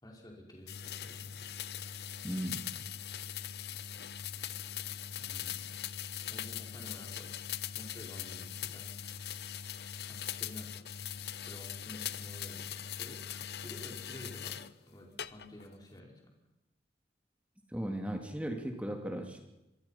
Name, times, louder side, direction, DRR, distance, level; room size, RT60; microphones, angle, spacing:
voice 1, 0.0-1.5 5.2-5.7 6.2-7.3 7.7-8.9 10.1-10.8 11.4-16.3, left 1 dB, 20° left, 0 dB, 4.9 m, -51 dB
sound 1, 0.7-14.7 15.2-15.7, left 9 dB, 65° left, 0.7 m, -41 dB
voice 2, 2.2-2.7 17.7-19.5, right 1 dB, 10° right, 3 dB, 2.6 m, -37 dB
26.0 x 23.0 x 5.8 m, 0.95 s
head